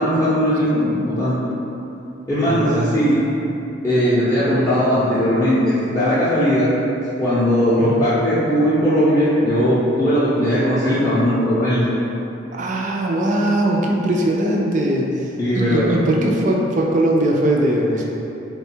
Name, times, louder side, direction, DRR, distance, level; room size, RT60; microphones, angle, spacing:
voice 1, 0.0-1.4 2.3-3.2 3.8-6.7 7.2-11.8 15.4-16.0, equal, 15° left, -13 dB, 0.6 m, -18 dB
voice 2, 2.4-3.2 7.8-8.0 12.5-15.3 15.6-18.1, right 1 dB, 40° right, -1 dB, 0.4 m, -20 dB
3.6 x 2.3 x 4.3 m, 2.9 s
head